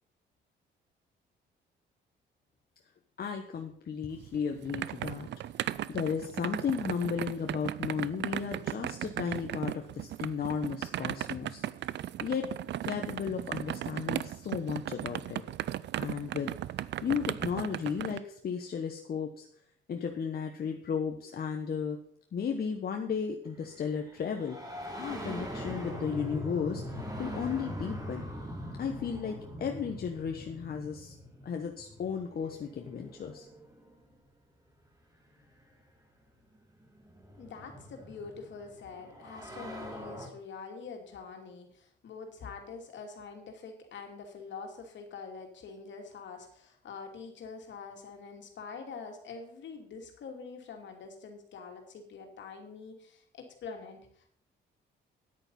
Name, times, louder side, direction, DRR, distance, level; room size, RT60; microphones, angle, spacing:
voice 1, 3.2-5.3 5.9-11.6 12.2-12.5 12.8-15.4 16.0-16.5 17.0-19.5 19.9-22.0 22.3-24.6 24.9-28.3 28.8-31.1 31.4-33.5, left 6 dB, 50° left, 4 dB, 1.2 m, -34 dB
sound 1, 4.2-18.2, right 12 dB, 65° right, 0.5 m, -37 dB
sound 2, 23.5-34.2 35.4-35.5 36.5-40.3, left 1 dB, 20° right, 2.7 m, -42 dB
voice 2, 37.4-54.3, left 5 dB, 65° left, 4 dB, 2.7 m, -45 dB
10.0 x 8.9 x 5.5 m, 0.64 s
cardioid pair, 90°, 20 cm